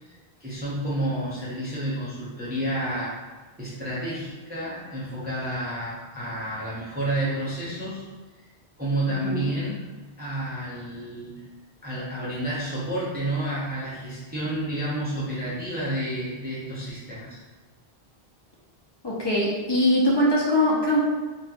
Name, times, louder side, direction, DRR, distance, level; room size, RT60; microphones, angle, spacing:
voice 1, 0.0-3.2 3.6-8.0 8.8-9.8 10.2-11.3 11.8-17.4, right 1 dB, 10° right, -8 dB, 0.6 m, -30 dB
voice 2, 19.0-21.0, left 1 dB, 30° left, -5 dB, 0.5 m, -22 dB
4.0 x 2.4 x 2.3 m, 1.3 s
omnidirectional pair, 1.1 m